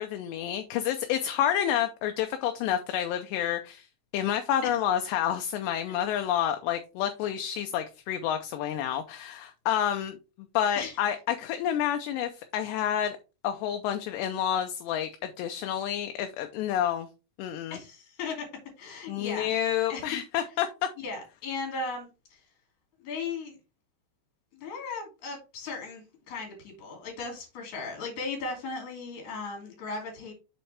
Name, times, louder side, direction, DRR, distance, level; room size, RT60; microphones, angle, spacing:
voice 1, 0.0-3.9 4.1-10.2 10.5-13.2 13.4-17.1 17.4-17.8 19.1-20.7, left 10 dB, 80° left, 2.6 m, -29 dB
voice 2, 17.7-18.5 18.8-19.6 19.9-20.0 21.0-22.4 23.0-23.6 24.5-30.3, left 4 dB, 45° left, 3.6 m, -37 dB
7.2 x 5.7 x 3.3 m
omnidirectional pair, 5.3 m